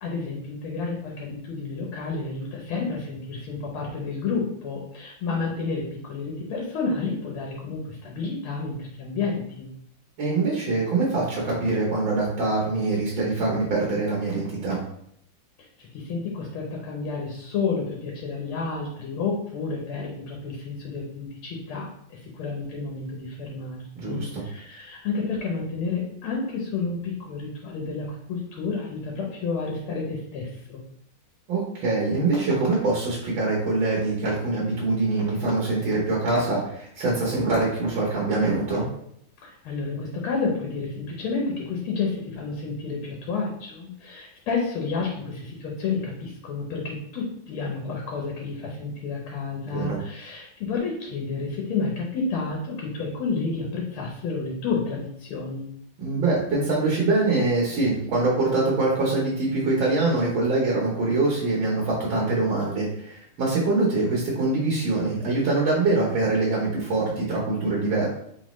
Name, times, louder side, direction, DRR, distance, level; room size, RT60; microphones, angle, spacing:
voice 1, 0.0-9.7 15.8-30.8 39.4-55.7, left 4 dB, 75° left, -1 dB, 1.7 m, -30 dB
voice 2, 10.2-14.8 24.0-24.4 31.5-38.9 49.7-50.0 56.0-68.1, right 3 dB, 70° right, -3 dB, 1.7 m, -24 dB
4.3 x 4.0 x 3.0 m, 0.72 s
omnidirectional pair, 2.4 m